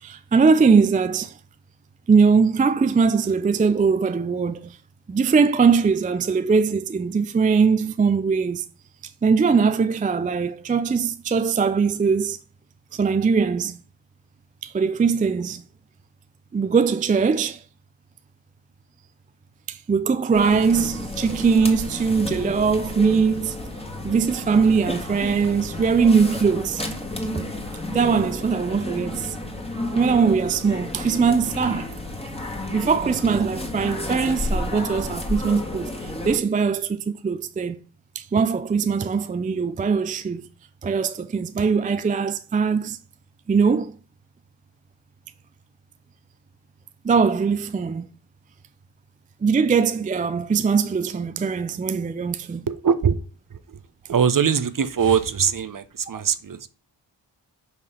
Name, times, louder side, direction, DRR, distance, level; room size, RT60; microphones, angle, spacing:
voice 1, 0.0-1.4 2.1-4.8 5.1-8.6 9.2-12.4 12.9-13.8 14.6-15.6 16.5-17.6 19.7-23.6 24.0-26.8 27.3-27.4 27.9-29.4 29.9-31.9 32.7-37.8 38.1-40.4 40.8-43.0 43.5-44.0 47.0-48.1 49.4-52.6, right 5 dB, 20° right, 0.3 m, -21 dB
sound 1, 20.3-36.4, left 2 dB, 10° left, 1.5 m, -31 dB
voice 2, 52.7-53.2 53.5-53.8 54.1-56.7, right 7 dB, 45° right, 0.7 m, -22 dB
5.6 x 3.2 x 5.5 m
cardioid pair, 40°, 48 cm